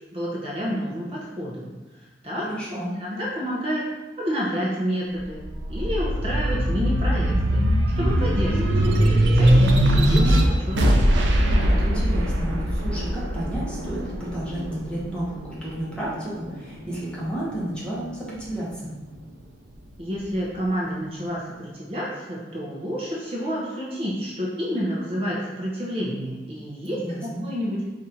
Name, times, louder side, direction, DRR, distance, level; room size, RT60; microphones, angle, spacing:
voice 1, 0.1-1.7 2.2-3.9 4.2-5.4 5.7-7.6 8.0-10.9 20.0-27.9, equal, 30° right, -5 dB, 0.6 m, -29 dB
voice 2, 2.4-2.9 11.7-18.9 26.9-27.5, right 1 dB, 5° left, -8 dB, 1.1 m, -32 dB
sound 1, 5.2-16.0 16.5-17.6, equal, 85° right, 0.5 m, -21 dB
4.0 x 2.5 x 4.3 m, 1.2 s
head